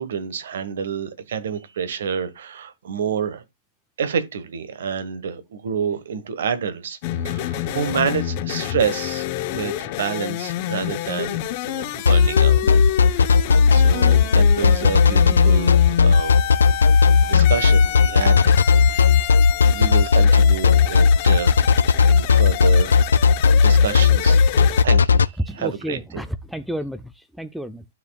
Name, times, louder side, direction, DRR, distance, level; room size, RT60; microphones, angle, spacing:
voice 1, 0.0-3.4 4.0-7.0 7.2-12.6 13.0-13.3 13.7-16.3 17.2-19.3 19.7-21.7 22.1-23.1 23.5-26.2, right 7 dB, 70° right, 1.4 m, -28 dB
sound 1, 7.0-24.8, left 13 dB, 45° left, 0.9 m, -29 dB
sound 2, 12.1-25.3, left 5 dB, 85° left, 0.3 m, -14 dB
voice 2, 25.5-27.8, equal, ahead, 0.6 m, -32 dB
12.5 x 4.9 x 2.4 m
hypercardioid pair, 125°, 0 cm